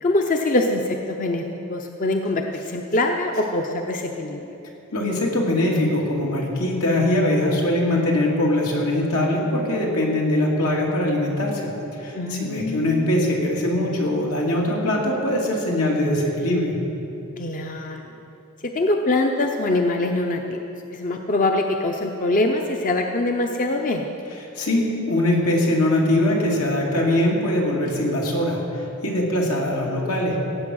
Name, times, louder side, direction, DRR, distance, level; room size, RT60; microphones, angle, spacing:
voice 1, 0.0-4.5 12.1-13.1 17.4-18.0 18.6-20.6 20.9-24.1, left 2 dB, 40° left, 4 dB, 0.6 m, -23 dB
voice 2, 4.9-16.8 24.6-30.4, left 1 dB, 85° left, -2 dB, 2.6 m, -22 dB
17.0 x 8.2 x 6.3 m, 3.0 s
head